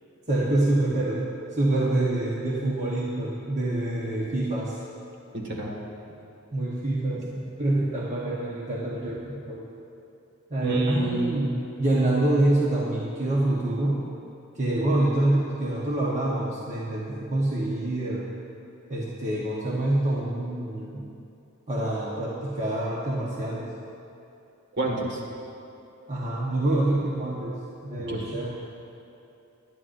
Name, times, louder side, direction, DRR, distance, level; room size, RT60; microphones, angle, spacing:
voice 1, 0.3-1.2 1.5-4.8 6.5-9.2 9.5-9.6 10.5-11.5 11.8-14.0 14.5-18.2 18.9-21.0 21.7-23.7 26.1-27.5 27.8-28.5, right 1 dB, 35° right, -5 dB, 1.2 m, -26 dB
voice 2, 5.3-5.8 10.6-11.6 24.7-25.2 28.1-28.3, right 2 dB, 55° right, -1 dB, 1.9 m, -28 dB
19.5 x 11.5 x 2.7 m, 2.7 s
head